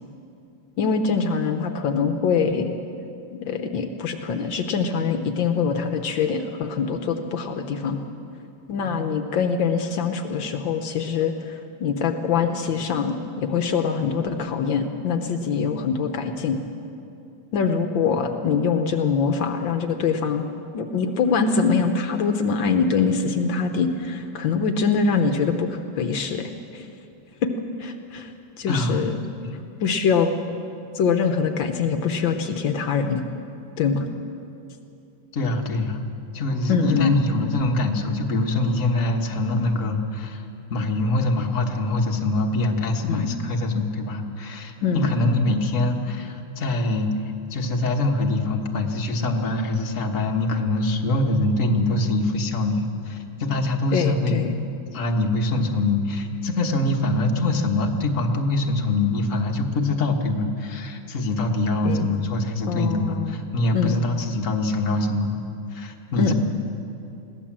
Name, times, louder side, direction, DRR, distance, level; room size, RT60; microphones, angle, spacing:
voice 1, 0.8-2.8 3.4-8.0 8.7-16.6 17.5-20.4 20.7-26.9 27.4-27.5 27.8-28.3 28.6-29.1 29.8-30.3 31.0-33.2 33.8-34.0 36.7-37.2 43.1-43.4 44.8-45.4 53.9-54.5 61.8-62.1 62.7-63.4 63.7-64.0 66.2-66.3, left 5 dB, 75° left, 6 dB, 1.7 m, -24 dB
voice 2, 28.7-29.1 29.4-29.6 35.3-36.1 36.3-40.4 40.7-47.1 47.5-54.4 54.9-65.4 65.7-66.3, left 2 dB, 40° left, 2 dB, 1.7 m, -24 dB
21.5 x 17.0 x 7.4 m, 2.7 s
omnidirectional pair, 2.1 m